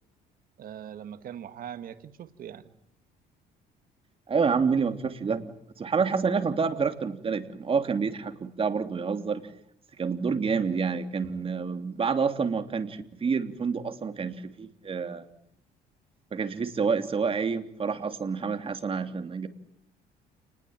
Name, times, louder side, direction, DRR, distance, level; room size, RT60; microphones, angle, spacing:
voice 1, 0.6-2.7, right 9 dB, 60° right, 11 dB, 1.8 m, -41 dB
voice 2, 4.3-5.4 5.8-9.4 10.0-15.2 16.3-19.5, right 5 dB, 35° right, 8 dB, 3.2 m, -28 dB
30.0 x 20.5 x 9.1 m, 0.70 s
cardioid pair, 110°, 17 cm